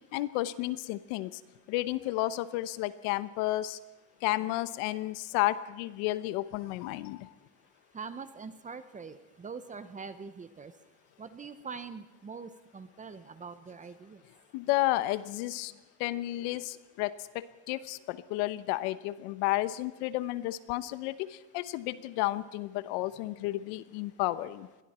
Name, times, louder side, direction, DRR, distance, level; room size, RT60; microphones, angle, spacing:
voice 1, 0.1-1.3 1.7-3.8 4.2-7.2 14.5-15.7 16.0-21.3 21.5-24.7, left 16 dB, 75° left, 15 dB, 1.1 m, -32 dB
voice 2, 7.9-10.8 11.2-14.2, right 5 dB, 15° right, 12 dB, 0.8 m, -43 dB
28.0 x 21.5 x 4.3 m, 1.1 s
cardioid pair, 145°, 45 cm